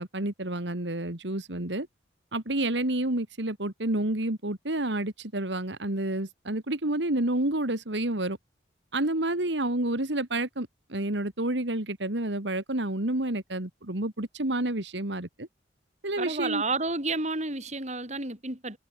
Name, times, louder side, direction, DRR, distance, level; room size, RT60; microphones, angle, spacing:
voice 1, 0.0-1.9 2.3-8.4 8.9-15.5 16.0-16.6, right 1 dB, 75° right, 2.7 m, -29 dB
voice 2, 16.2-18.8, right 3 dB, 40° right, 7.1 m, -31 dB
head